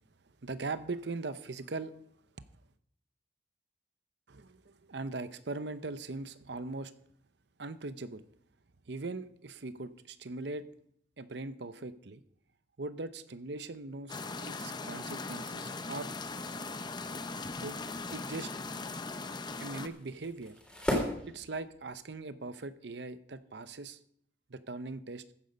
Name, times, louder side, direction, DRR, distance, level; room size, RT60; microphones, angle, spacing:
voice 1, 0.4-1.9 4.3-6.9 7.6-8.2 8.9-10.7 11.2-12.2 12.8-16.1 17.6-17.8 18.1-18.5 19.6-20.5 21.3-24.0 24.5-25.2, right 3 dB, 65° right, 13 dB, 0.7 m, -40 dB
sound 1, 14.1-19.9, left 3 dB, 25° left, 0.6 m, -39 dB
sound 2, 16.1-22.1, equal, 5° left, 3.4 m, -40 dB
14.5 x 9.6 x 5.2 m, 0.69 s
head